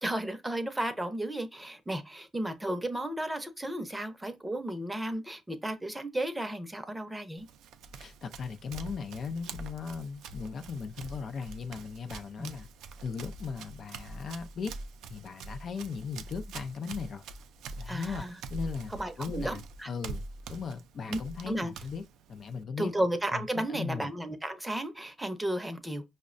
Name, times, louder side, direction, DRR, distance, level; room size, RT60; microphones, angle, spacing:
voice 1, 0.0-7.5 12.4-12.5 17.9-18.4 18.9-19.9 21.1-21.2 21.4-21.7 22.8-26.0, right 1 dB, 10° right, 0.6 m, -33 dB
Run, 7.4-22.6, right 3 dB, 85° right, 0.3 m, -44 dB
voice 2, 7.9-12.7 13.0-14.7 15.1-17.2 17.8-18.2 18.5-22.9 23.3-24.1, left 5 dB, 55° left, 0.4 m, -38 dB
5.2 x 2.1 x 2.4 m
cardioid pair, 90°, 0 cm